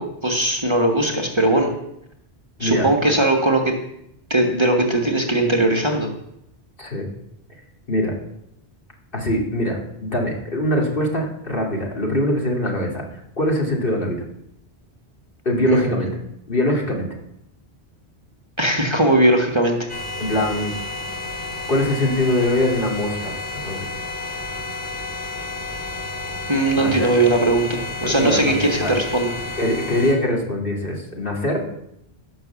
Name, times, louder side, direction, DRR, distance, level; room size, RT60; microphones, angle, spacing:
voice 1, 0.0-1.7 2.6-3.7 4.3-6.1 15.7-16.1 18.6-19.9 26.5-29.3, right 1 dB, 25° right, 2 dB, 1.5 m, -19 dB
voice 2, 2.6-3.1 6.8-7.1 7.9-8.1 9.1-14.2 15.4-16.1 16.5-17.1 20.2-20.7 21.7-23.3 23.6-23.9 26.7-27.1 28.0-28.9 29.6-31.6, left 1 dB, 55° left, 0 dB, 2.8 m, -22 dB
sound 1, 19.9-30.1, left 2 dB, 10° left, 2.8 m, -31 dB
16.5 x 6.3 x 7.1 m, 0.79 s
omnidirectional pair, 1.1 m